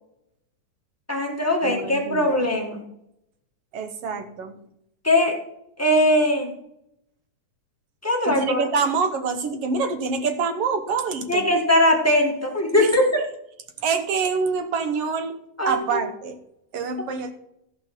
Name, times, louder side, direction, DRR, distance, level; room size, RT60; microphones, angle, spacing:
voice 1, 1.1-2.8 5.0-5.4 5.8-6.5 8.0-8.6 11.3-13.0 15.6-16.0, left 1 dB, 10° left, -1 dB, 0.7 m, -20 dB
voice 2, 1.6-2.5 3.7-4.6 8.2-11.5 12.8-12.9 13.8-15.4 15.6-16.4 16.7-17.3, right 5 dB, 65° right, 7 dB, 1.6 m, -26 dB
14.0 x 5.6 x 6.0 m, 0.78 s
omnidirectional pair, 3.6 m